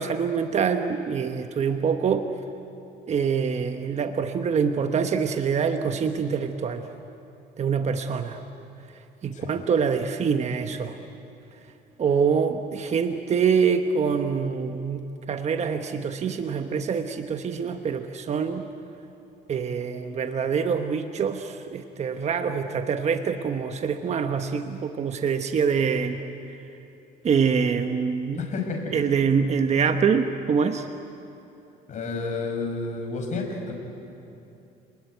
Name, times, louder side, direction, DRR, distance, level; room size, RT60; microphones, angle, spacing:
voice 1, 0.0-2.2 3.1-6.8 7.6-8.4 9.2-10.9 12.0-15.0 15.3-18.6 19.5-26.2 27.2-28.4 28.9-30.9, right 6 dB, 40° right, 7 dB, 1.2 m, -25 dB
voice 2, 28.4-28.9 31.9-33.7, left 3 dB, 45° left, 0 dB, 5.7 m, -30 dB
29.0 x 20.5 x 9.4 m, 2.8 s
cardioid pair, 110°, 17 cm